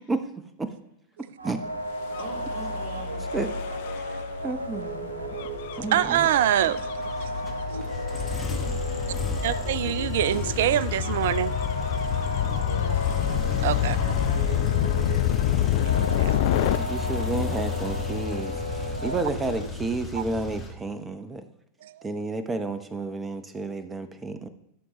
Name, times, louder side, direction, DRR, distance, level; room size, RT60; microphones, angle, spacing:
voice 1, 0.1-0.7 1.4-1.7 3.3-3.5 3.9-4.0 4.4-5.3 5.8-6.3 16.3-21.4 22.0-24.5, right 3 dB, 15° right, 0.8 m, -31 dB
sound 1, 1.4-19.7, equal, 80° right, 0.8 m, -33 dB
Gull seagull / Waves surf / Siren, 2.0-16.8, left 14 dB, 50° left, 0.4 m, -29 dB
voice 2, 2.2-3.3 8.6-9.5 12.3-13.3 13.8-15.2, left 1 dB, 65° left, 3.9 m, -42 dB
voice 3, 5.7-8.0 8.3-8.4 9.4-11.5 13.6-14.0 16.0-16.4 20.1-20.2 21.8-22.1, right 12 dB, 55° right, 0.4 m, -26 dB
sound 2, 6.6-20.7, left 5 dB, 15° left, 1.6 m, -33 dB
14.5 x 6.2 x 3.1 m
figure-of-eight pair, 90°, 0 cm